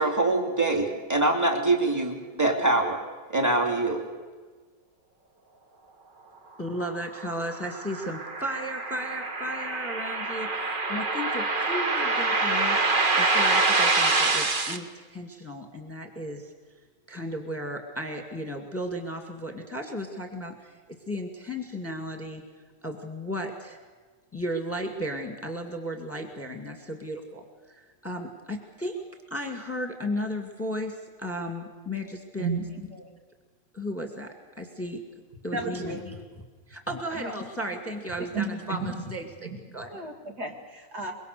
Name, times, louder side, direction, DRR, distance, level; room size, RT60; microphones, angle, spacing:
voice 1, 0.0-3.0 3.3-4.0, right 2 dB, 10° right, 3 dB, 2.6 m, -24 dB
voice 2, 6.6-12.8 13.1-16.5 17.1-20.8 21.1-22.4 22.8-23.8 24.3-29.0 29.3-32.6 33.7-35.0 35.4-36.2 36.7-39.9, equal, 5° left, 4 dB, 2.1 m, -35 dB
sound 1, 6.9-14.8, right 3 dB, 30° right, 1.3 m, -26 dB
voice 3, 35.5-36.2 37.1-37.3 38.3-38.9 39.4-39.6 39.9-41.1, right 4 dB, 60° right, 2 dB, 2.9 m, -33 dB
24.5 x 22.5 x 6.8 m, 1.4 s
omnidirectional pair, 1.9 m